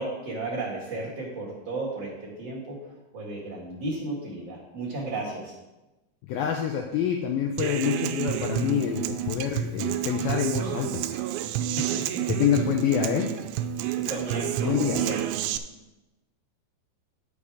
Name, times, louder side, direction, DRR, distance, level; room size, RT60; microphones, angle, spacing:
voice 1, 0.0-5.6 11.7-12.2 14.0-15.2, right 2 dB, 45° right, -5 dB, 2.5 m, -34 dB
voice 2, 6.2-11.0 12.4-13.3 14.6-15.0, left 9 dB, 90° left, 2 dB, 2.1 m, -26 dB
Human voice / Acoustic guitar, 7.6-15.6, right 11 dB, 85° right, 2.9 m, -29 dB
10.5 x 7.0 x 4.9 m, 1.0 s
omnidirectional pair, 5.2 m